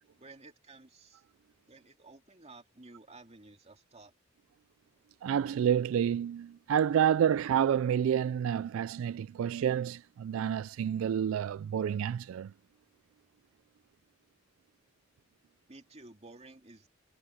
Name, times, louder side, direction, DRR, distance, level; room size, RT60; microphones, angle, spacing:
voice 1, 0.2-1.2 1.7-4.1 15.7-16.9, right 3 dB, 35° right, 2.2 m, -53 dB
voice 2, 5.2-12.5, right 9 dB, 85° right, 0.3 m, -29 dB
head